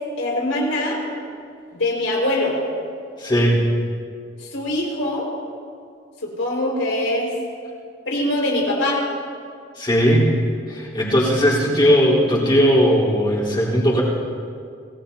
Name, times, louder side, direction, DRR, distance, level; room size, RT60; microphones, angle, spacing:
voice 1, 0.2-1.0 1.7-2.6 4.4-5.3 6.2-7.3 8.1-9.0, left 1 dB, 85° left, -2 dB, 5.3 m, -23 dB
voice 2, 3.2-3.6 9.8-10.3 10.7-14.0, equal, 25° left, -7 dB, 4.1 m, -17 dB
27.5 x 18.0 x 2.9 m, 2.3 s
head